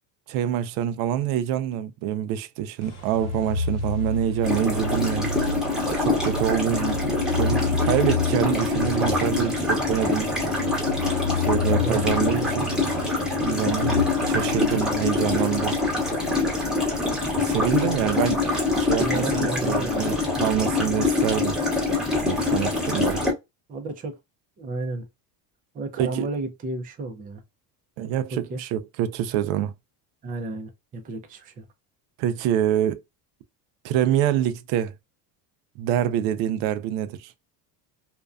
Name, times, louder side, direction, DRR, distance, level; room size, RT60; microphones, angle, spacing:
voice 1, 0.3-5.3 6.0-7.0 7.3-10.3 11.4-12.7 13.4-15.8 17.4-18.4 18.7-21.6 22.2-23.2 26.0-26.3 28.0-29.7 32.2-33.0 33.8-34.9 35.8-37.3, right 10 dB, 80° right, 0.5 m, -26 dB
sound 1, 2.8-21.3, left 2 dB, 85° left, 1.0 m, -32 dB
sound 2, 4.4-23.3, left 3 dB, ahead, 0.8 m, -25 dB
voice 2, 11.7-12.0 12.4-12.5 17.8-18.0 19.0-20.7 23.7-24.2 24.6-25.0 25.7-27.4 28.3-28.6 30.2-31.6, right 2 dB, 20° right, 0.3 m, -32 dB
2.5 x 2.2 x 2.3 m
cardioid pair, 140°, 47 cm